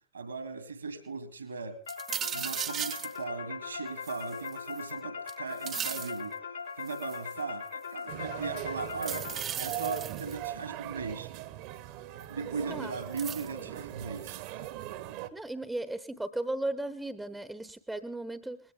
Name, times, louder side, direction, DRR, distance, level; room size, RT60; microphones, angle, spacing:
voice 1, 0.1-1.8 2.3-6.3 6.8-9.3 9.6-11.3 12.3-14.7, right 4 dB, 75° right, 10 dB, 2.4 m, -38 dB
sound 1, 1.9-9.7, left 6 dB, 70° left, 5.1 m, -40 dB
sound 2, 1.9-3.2 4.0-4.9 5.3-6.2 6.9-7.3 8.9-10.5 12.2-12.3 13.2-13.5, right 9 dB, 25° right, 0.6 m, -37 dB
sound 3, 8.1-15.3, right 12 dB, 45° right, 1.2 m, -40 dB
voice 2, 15.3-18.6, right 2 dB, 5° right, 13 dB, 1.0 m, -36 dB
20.5 x 16.5 x 3.7 m, 0.41 s
figure-of-eight pair, 90°, 0 cm